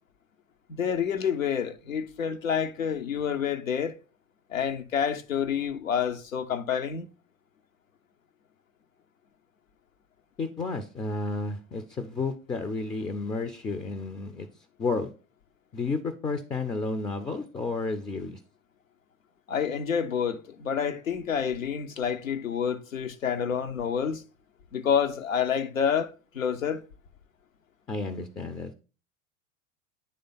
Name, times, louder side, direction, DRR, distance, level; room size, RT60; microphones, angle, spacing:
voice 1, 0.7-4.0 4.5-7.1 19.5-24.2 24.7-26.8, left 7 dB, 85° left, 0.7 m, -28 dB
voice 2, 10.4-14.5 14.8-15.1 15.7-18.4 27.9-28.7, left 3 dB, 10° left, 0.3 m, -31 dB
9.5 x 3.3 x 3.9 m
figure-of-eight pair, 80°, 39 cm